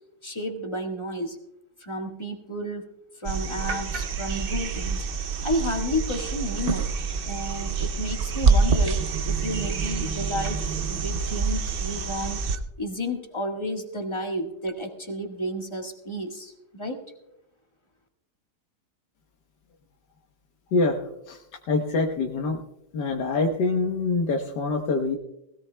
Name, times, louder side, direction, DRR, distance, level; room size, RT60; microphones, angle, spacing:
voice 1, 0.2-1.4 1.8-2.8 3.1-5.1 5.4-6.9 7.2-12.4 12.8-17.0, equal, 15° left, 2 dB, 1.5 m, -32 dB
sound 1, 3.2-12.6 14.7-14.8, right 5 dB, 60° right, 0.6 m, -26 dB
voice 2, 20.7-21.4 21.7-22.6 22.9-25.2, left 3 dB, 80° left, 1 dB, 1.7 m, -25 dB
20.0 x 16.5 x 2.2 m, 0.85 s
omnidirectional pair, 1.8 m